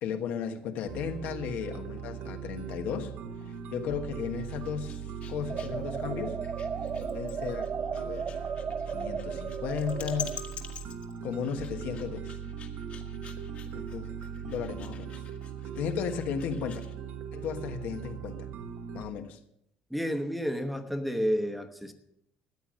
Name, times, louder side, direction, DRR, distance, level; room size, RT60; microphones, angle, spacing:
voice 1, 0.0-3.1 3.5-5.0 5.3-6.4 7.1-8.5 8.9-10.4 11.2-12.3 13.7-14.1 14.4-15.2 15.7-16.8 17.3-18.5 18.9-19.4, left 7 dB, 85° left, 6 dB, 1.4 m, -35 dB
sound 1, 0.9-19.0, right 7 dB, 65° right, 1.2 m, -39 dB
sound 2, 4.3-17.0, left 8 dB, 50° left, 1.6 m, -47 dB
sound 3, 5.5-10.4, right 6 dB, 35° right, 0.8 m, -35 dB
voice 2, 19.9-21.9, equal, ahead, 6 dB, 1.0 m, -30 dB
13.5 x 9.1 x 6.3 m, 0.77 s
cardioid pair, 150°, 3 cm